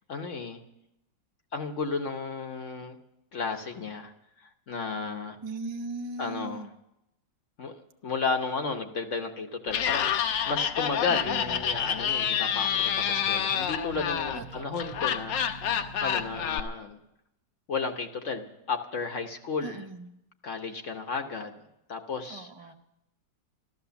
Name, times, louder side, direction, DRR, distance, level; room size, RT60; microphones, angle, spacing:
voice 1, 0.1-0.6 1.5-3.0 3.3-4.1 4.4-5.4 6.2-6.7 7.6-17.0 17.7-19.8 20.4-21.6 21.9-22.5, left 4 dB, 50° left, 5 dB, 1.1 m, -33 dB
voice 2, 5.4-6.7 11.1-11.6 14.4-15.0 19.6-20.1 22.3-22.7, right 3 dB, 35° right, 6 dB, 0.4 m, -39 dB
Laughter, 9.7-16.6, left 8 dB, 80° left, 1.5 m, -28 dB
sound 1, 11.2-16.6, right 7 dB, 70° right, 1.3 m, -47 dB
13.5 x 13.5 x 7.0 m, 0.84 s
omnidirectional pair, 2.0 m